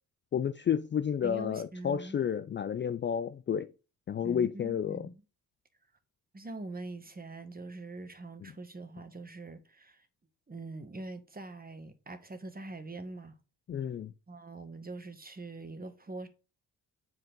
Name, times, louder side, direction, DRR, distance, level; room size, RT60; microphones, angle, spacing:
voice 1, 0.3-3.7 4.1-5.1 8.4-8.5 13.7-14.1, left 8 dB, 30° left, 0.4 m, -31 dB
voice 2, 1.2-2.2 4.2-5.2 6.3-10.1 10.5-13.4 14.3-16.3, right 2 dB, 20° right, 1.5 m, -43 dB
7.8 x 4.5 x 3.8 m
supercardioid pair, 50°, 39 cm